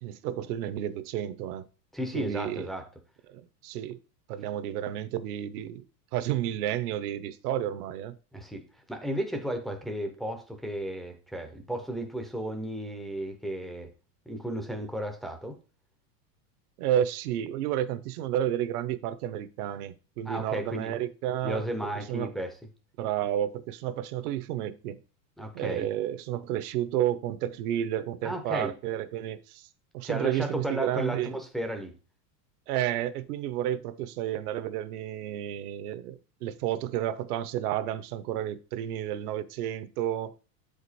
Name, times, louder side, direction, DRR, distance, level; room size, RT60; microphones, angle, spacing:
voice 1, 0.0-1.7 2.1-2.7 3.3-4.0 4.3-5.8 6.1-8.2 16.8-21.6 22.1-22.3 23.0-25.0 25.5-29.7 29.9-31.4 32.7-40.3, right 11 dB, 65° right, 0.8 m, -31 dB
voice 2, 1.9-2.9 8.3-13.9 14.3-15.6 20.3-20.9 21.4-22.6 25.4-25.9 28.2-28.7 30.0-31.9, equal, ahead, 0.4 m, -34 dB
7.5 x 5.0 x 4.1 m
supercardioid pair, 145°, 49 cm